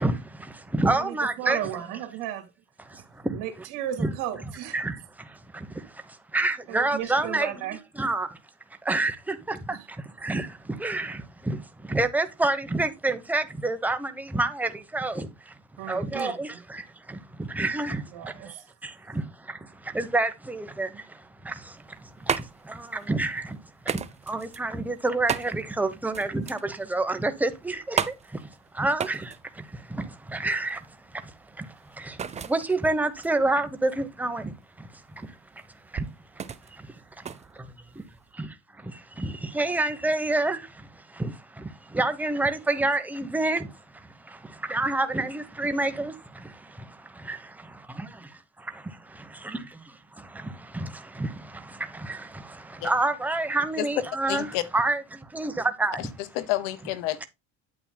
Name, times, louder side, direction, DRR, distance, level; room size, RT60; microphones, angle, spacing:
voice 1, 0.0-1.6 2.8-3.4 4.0-4.1 4.7-7.5 7.9-8.4 8.8-15.5 15.8-23.6 23.8-28.5 28.7-35.4 35.9-36.1 36.4-37.3 38.4-54.5 54.7-56.0, right 2 dB, 5° right, 0.9 m, -29 dB
voice 2, 0.9-2.5 2.9-3.0 3.3-4.8 6.7-7.8 9.7-9.9 15.8-16.3 18.1-18.6, right 11 dB, 75° right, 2.3 m, -34 dB
sound 1, 21.8-38.3, right 7 dB, 20° right, 0.5 m, -36 dB
voice 3, 54.3-54.6 56.0-56.1 56.3-57.3, left 15 dB, 90° left, 1.1 m, -29 dB
8.8 x 8.8 x 2.2 m
cardioid pair, 125°, 32 cm